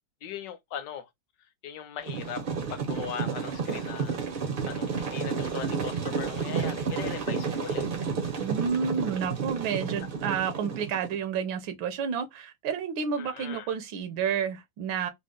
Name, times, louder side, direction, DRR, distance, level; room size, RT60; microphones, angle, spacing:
voice 1, 0.2-1.1 1.6-7.9 13.2-13.7, left 9 dB, 75° left, 1.2 m, -40 dB
sound 1, 2.1-11.2, right 5 dB, 55° right, 0.5 m, -31 dB
voice 2, 8.4-15.1, right 7 dB, 85° right, 1.6 m, -30 dB
3.9 x 2.0 x 3.7 m
omnidirectional pair, 2.1 m